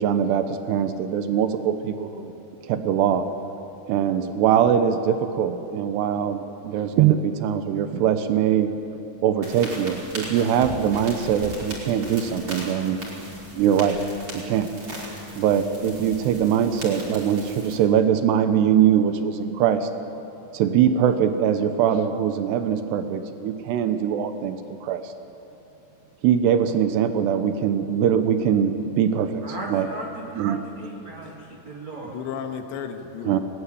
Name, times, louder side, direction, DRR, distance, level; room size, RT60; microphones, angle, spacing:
voice 1, 0.0-2.3 2.6-3.3 3.9-8.7 9.2-13.0 13.5-14.0 14.3-14.7 15.4-19.9 20.5-25.1 26.2-29.4 29.7-29.9 30.4-30.6 33.2-33.4, right 9 dB, 75° right, 9 dB, 2.5 m, -22 dB
sound 1, 9.4-17.8, equal, 25° right, 5.4 m, -37 dB
voice 2, 29.4-32.1, right 2 dB, 45° right, -2 dB, 2.6 m, -37 dB
voice 3, 31.2-31.6 32.0-33.4, left 7 dB, 70° left, 6 dB, 3.4 m, -34 dB
21.0 x 20.5 x 10.0 m, 2.8 s
omnidirectional pair, 5.9 m